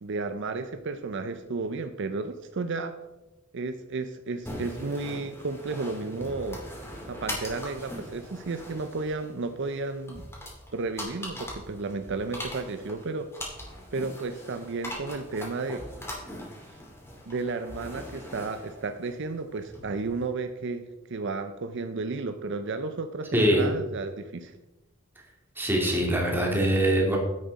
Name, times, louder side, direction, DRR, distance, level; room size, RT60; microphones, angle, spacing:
voice 1, 0.0-2.9 3.5-6.6 7.1-10.3 10.7-13.3 13.9-15.9 17.3-24.6, right 3 dB, 65° right, 9 dB, 0.6 m, -33 dB
sound 1, 4.5-20.3, left 1 dB, 15° left, 2.6 m, -41 dB
voice 2, 23.3-23.7 25.6-27.2, right 1 dB, 10° right, -1 dB, 2.3 m, -23 dB
9.8 x 8.0 x 4.1 m, 1.0 s
head